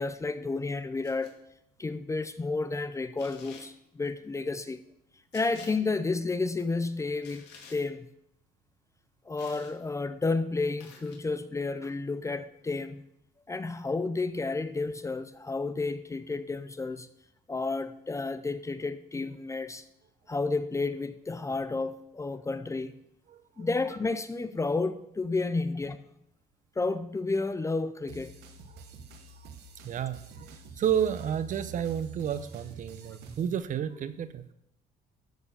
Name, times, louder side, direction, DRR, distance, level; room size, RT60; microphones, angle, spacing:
voice 1, 0.0-1.3 1.8-4.8 5.3-7.4 7.7-8.1 9.3-13.0 13.5-17.1 17.5-19.8 20.3-22.9 23.6-26.0 26.8-28.4, left 3 dB, 20° left, 0.5 m, -31 dB
sound 1, 1.0-1.3 3.2-3.7 5.3-5.7 7.2-7.8 9.4-9.7 10.8-11.2, left 5 dB, 80° left, 2.2 m, -50 dB
voice 2, 23.3-23.7 28.7-28.8 29.8-34.4, right 9 dB, 50° right, 0.7 m, -31 dB
sound 2, 28.1-33.6, right 6 dB, 75° right, 1.3 m, -46 dB
13.0 x 4.5 x 6.8 m
cardioid pair, 110°, 17 cm